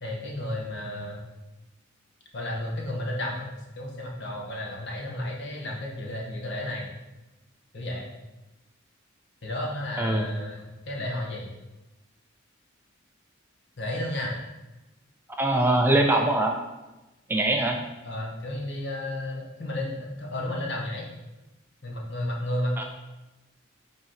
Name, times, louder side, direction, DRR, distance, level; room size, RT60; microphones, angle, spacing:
voice 1, 0.0-1.2 2.3-6.9 7.7-8.1 9.4-11.5 13.8-14.3 18.0-21.1 21.8-22.8, left 1 dB, 60° left, -1 dB, 1.4 m, -32 dB
voice 2, 15.4-16.6 17.3-17.8 22.8-22.9, right 1 dB, 10° right, 2 dB, 0.5 m, -22 dB
5.4 x 3.9 x 5.7 m, 1.1 s
head